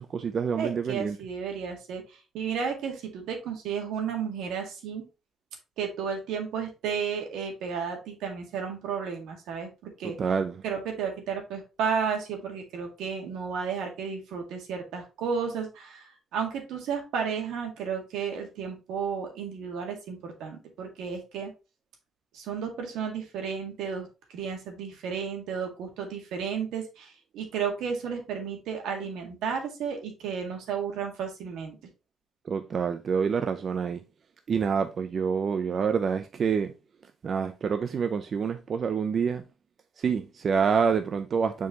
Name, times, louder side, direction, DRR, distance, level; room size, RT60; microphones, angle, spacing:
voice 1, 0.0-1.2 10.2-10.6 32.5-34.0 34.5-36.7 37.2-39.4 40.0-41.7, right 6 dB, 50° right, 0.5 m, -27 dB
voice 2, 0.6-5.0 5.8-10.2 10.6-21.5 22.3-31.8, right 6 dB, 85° right, 2.0 m, -33 dB
6.8 x 4.6 x 3.0 m
cardioid pair, 90°, 0 cm